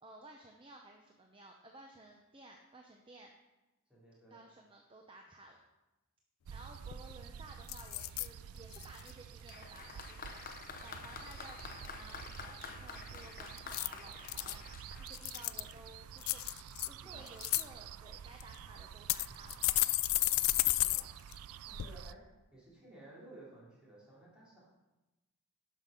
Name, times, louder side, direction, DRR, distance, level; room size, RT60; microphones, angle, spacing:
voice 1, 0.0-3.3 4.3-5.6 6.5-19.6, right 2 dB, 25° right, 2 dB, 0.7 m, -55 dB
voice 2, 3.9-4.4 16.9-17.3 20.6-21.1 21.7-22.2 22.5-24.7, right 1 dB, 5° right, -7 dB, 3.7 m, -56 dB
sound 1, 6.4-22.1, right 8 dB, 80° right, 0.3 m, -50 dB
sound 2, 6.5-6.6 6.9-7.2 7.7-8.3 8.7-9.1 13.6-14.6 15.1-15.7 16.2-16.9 17.3-17.6 18.4-18.5 19.1-21.0 21.3-21.4 21.8-21.9, left 18 dB, 70° left, 0.3 m, -32 dB
Applause, 9.5-15.9, left 5 dB, 40° left, 0.8 m, -49 dB
11.5 x 6.1 x 5.3 m, 1.0 s
head